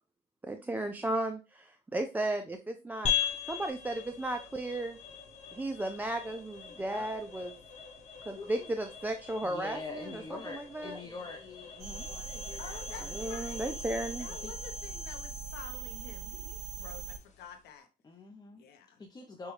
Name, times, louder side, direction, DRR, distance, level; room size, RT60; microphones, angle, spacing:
voice 1, 0.5-3.1 3.5-5.0 5.5-7.5 8.3-11.0 13.1-14.3, right 1 dB, 10° right, 5 dB, 0.4 m, -35 dB
sound 1, 3.0-17.7, left 8 dB, 45° left, 1.1 m, -41 dB
voice 2, 6.7-7.1 8.4-8.7 9.4-13.1 14.4-14.5 18.0-18.6 19.0-19.5, left 3 dB, 20° left, 0 dB, 0.7 m, -45 dB
sound 2, 11.8-17.2, right 4 dB, 65° right, 2.2 m, -40 dB
voice 3, 12.6-17.9 18.5-19.0, left 7 dB, 75° left, 5 dB, 0.9 m, -49 dB
6.1 x 2.3 x 3.1 m, 0.30 s
cardioid pair, 110°, 17 cm